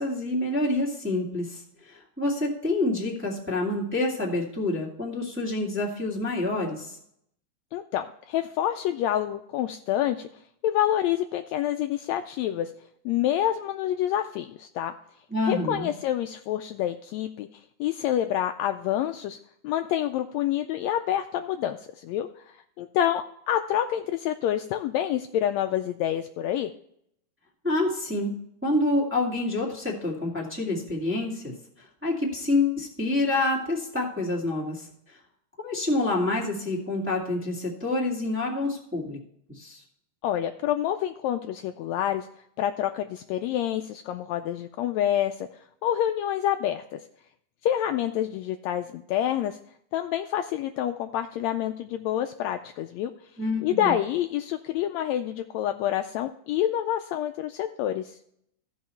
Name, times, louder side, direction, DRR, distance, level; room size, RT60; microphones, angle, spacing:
voice 1, 0.0-7.0 15.3-15.9 27.6-28.4 28.6-35.2 35.6-39.2 39.5-39.8 53.4-53.9, left 2 dB, 5° right, -5 dB, 1.7 m, -27 dB
voice 2, 7.7-10.3 10.6-12.7 13.0-14.9 15.5-19.4 19.6-26.7 40.2-42.3 42.6-47.0 47.6-49.6 49.9-53.1 53.6-58.2, left 11 dB, 80° left, 7 dB, 1.6 m, -27 dB
15.0 x 5.5 x 4.4 m, 0.72 s
omnidirectional pair, 3.4 m